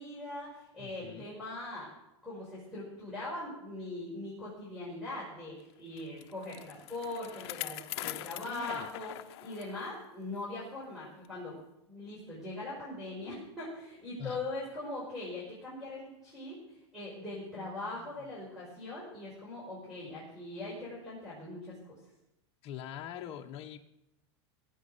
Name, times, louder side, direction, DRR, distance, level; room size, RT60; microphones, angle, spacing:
voice 1, 0.0-1.9 2.2-11.6 11.9-22.0, left 2 dB, 5° right, -7 dB, 5.5 m, -41 dB
voice 2, 0.8-1.3 8.4-8.9 14.2-14.4 17.5-18.1 22.6-23.8, left 10 dB, 40° left, 2 dB, 1.0 m, -44 dB
Bicycle, 6.0-9.9 10.3-10.4 11.2-11.3, left 16 dB, 65° left, 0.7 m, -42 dB
16.5 x 8.8 x 6.8 m, 0.88 s
supercardioid pair, 145°, 15 cm